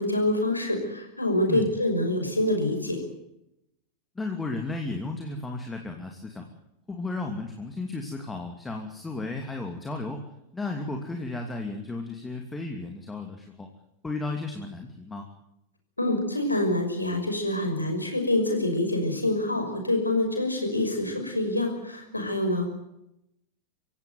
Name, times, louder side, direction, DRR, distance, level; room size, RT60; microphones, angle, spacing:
voice 1, 0.0-3.0 16.0-22.7, left 1 dB, 85° left, 4 dB, 5.8 m, -26 dB
voice 2, 4.1-6.5 6.9-10.3 10.5-13.7 14.0-15.3, left 2 dB, 10° left, 3 dB, 2.6 m, -34 dB
25.5 x 16.0 x 9.4 m, 0.85 s
figure-of-eight pair, 90°, 0 cm